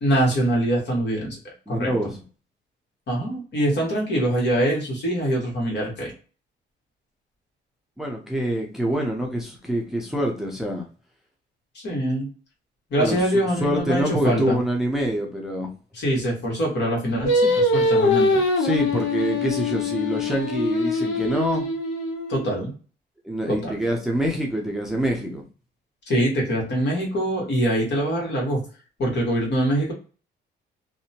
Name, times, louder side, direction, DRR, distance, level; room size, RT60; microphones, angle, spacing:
voice 1, 0.0-1.4 1.7-1.9 3.1-6.1 11.8-12.3 12.9-14.6 15.9-18.4 22.3-22.7 23.5-23.8 26.1-28.6 29.0-29.9, right 1 dB, 60° left, -1 dB, 1.3 m, -24 dB
voice 2, 1.7-2.2 8.0-10.9 13.0-13.2 13.6-15.7 18.6-21.7 23.2-25.4, right 1 dB, ahead, 0 dB, 0.6 m, -25 dB
Singing, 17.3-22.5, left 2 dB, 75° left, 0.7 m, -23 dB
2.7 x 2.2 x 2.7 m, 0.38 s
cardioid pair, 90°, 20 cm